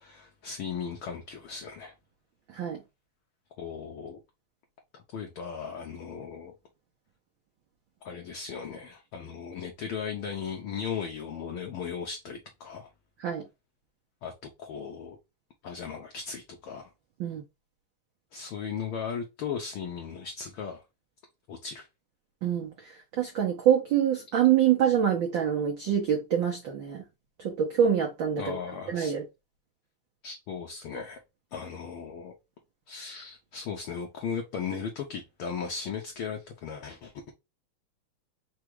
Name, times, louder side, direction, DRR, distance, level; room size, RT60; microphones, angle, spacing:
voice 1, 0.0-1.9 3.6-4.2 4.9-6.5 8.0-12.9 14.2-15.2 15.6-16.9 18.3-20.8 21.5-21.9 28.4-29.1 30.2-31.2 31.5-32.3 32.9-37.3, left 6 dB, 75° left, 1.3 m, -37 dB
voice 2, 22.4-22.7 23.2-27.0 27.4-28.6 28.9-29.2, right 9 dB, 80° right, 1.0 m, -25 dB
4.8 x 2.4 x 4.6 m
omnidirectional pair, 3.3 m